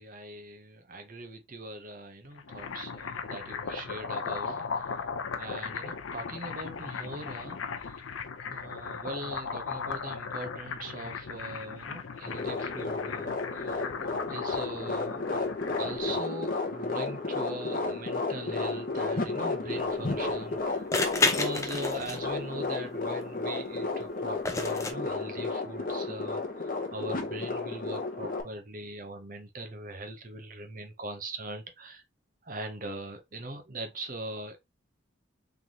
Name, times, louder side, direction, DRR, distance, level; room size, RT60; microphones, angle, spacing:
voice 1, 0.0-5.0 5.3-7.6 8.5-13.8 14.0-15.2 15.8-20.9 21.2-32.0 32.4-34.6, right 1 dB, 40° right, 0.8 m, -41 dB
sound 1, 2.2-16.1, left 5 dB, 75° left, 0.6 m, -37 dB
sound 2, 12.3-28.4, left 3 dB, 45° left, 0.8 m, -32 dB
sound 3, 19.8-19.9 20.9-22.4 24.5-24.9, left 3 dB, 15° left, 0.5 m, -29 dB
3.9 x 3.4 x 2.9 m
head